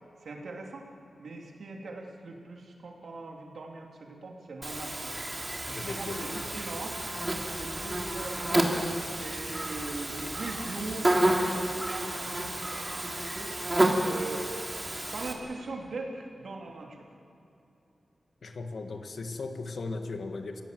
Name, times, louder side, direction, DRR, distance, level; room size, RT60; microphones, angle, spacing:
voice 1, 0.2-0.9 1.2-5.1 5.7-7.0 7.5-8.7 9.2-13.5 14.0-14.5 15.1-17.1, right 3 dB, 75° right, 1 dB, 3.2 m, -41 dB
Buzz, 4.6-15.3, right 1 dB, 20° right, 3.2 m, -30 dB
voice 2, 5.7-6.6 18.4-20.6, left 3 dB, 70° left, 5 dB, 2.0 m, -37 dB
29.0 x 17.5 x 7.8 m, 2.9 s
wide cardioid pair, 75°, 0 cm